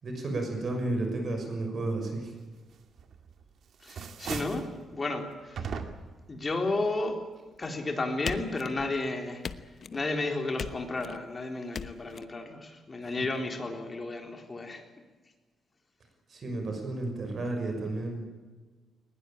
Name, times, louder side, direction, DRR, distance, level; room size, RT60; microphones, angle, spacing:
voice 1, 0.0-2.3 13.2-13.3 16.3-18.2, right 2 dB, 40° right, 4 dB, 6.3 m, -32 dB
sound 1, 3.0-3.4 3.7-4.7 5.6-6.2, right 6 dB, 60° right, 2.2 m, -37 dB
voice 2, 3.8-4.7 4.9-5.7 6.3-7.2 7.6-14.8, left 2 dB, 25° left, 4 dB, 3.8 m, -33 dB
sound 2, 8.3-9.0 9.4-10.1 10.6-11.2 11.7-12.2, left 6 dB, 50° left, 1.0 m, -39 dB
21.0 x 21.0 x 8.8 m, 1.3 s
cardioid pair, 135°, 0 cm